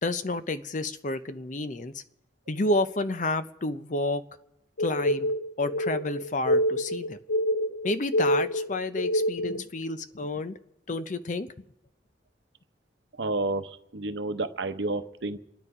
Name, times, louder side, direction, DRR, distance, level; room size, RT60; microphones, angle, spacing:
voice 1, 0.0-2.0 2.5-4.2 4.8-5.3 5.6-7.2 7.8-10.6 10.9-11.5, left 2 dB, 45° left, 11 dB, 0.7 m, -30 dB
sound 1, 4.8-9.6, equal, 70° left, 0.9 m, -27 dB
voice 2, 13.2-15.4, right 2 dB, 80° right, 9 dB, 0.9 m, -30 dB
27.0 x 9.5 x 4.9 m, 0.84 s
head